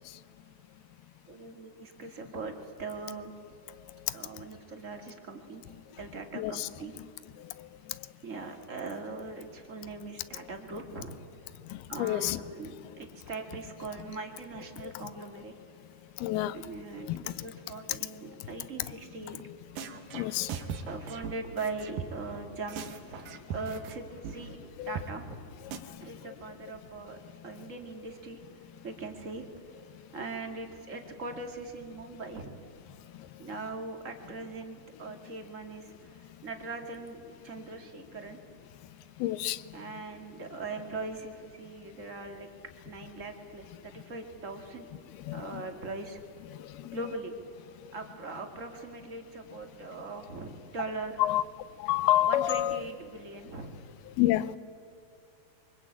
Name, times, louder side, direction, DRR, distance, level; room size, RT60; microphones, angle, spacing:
voice 1, 1.3-2.5 2.8-3.3 4.1-5.6 6.0-7.0 8.2-11.2 11.9-15.5 16.5-19.4 20.8-23.2 23.5-24.6 24.8-25.4 26.0-27.2 27.4-28.4 28.8-29.5 30.1-32.6 33.4-38.4 39.7-42.5 42.8-44.9 45.3-46.2 46.9-47.3 47.9-51.2 52.2-53.7, right 3 dB, 30° right, 1.7 m, -40 dB
voice 2, 6.4-6.7 7.4-7.7 11.7-12.4 16.2-16.7 17.1-17.2 20.1-20.8 24.8-24.9 25.7-26.1 39.2-39.7 45.3-45.6 46.5-47.0 51.2-51.4 51.8-52.8 54.2-54.6, left 14 dB, 85° left, 2.7 m, -29 dB
sound 1, 19.4-19.5 19.8-22.4 22.7-24.0 24.2-24.4 24.6-24.7 25.0-25.1 25.3-25.4 25.7-25.8, right 7 dB, 65° right, 2.8 m, -39 dB
24.5 x 24.0 x 8.6 m
omnidirectional pair, 4.4 m